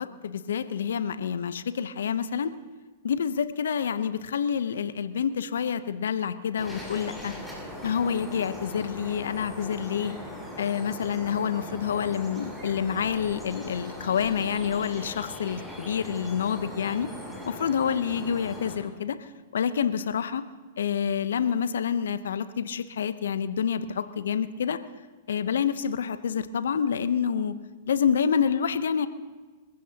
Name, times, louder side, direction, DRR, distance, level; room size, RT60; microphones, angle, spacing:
voice 1, 0.0-2.5 3.0-7.3 7.8-10.1 10.6-17.1 17.4-20.4 20.8-24.8 25.3-27.5 27.9-29.1, left 7 dB, 75° left, 13 dB, 0.8 m, -28 dB
sound 1, 6.6-18.8, left 1 dB, 5° left, 6.8 m, -40 dB
29.5 x 15.0 x 2.9 m, 1.3 s
hypercardioid pair, 110°, 0 cm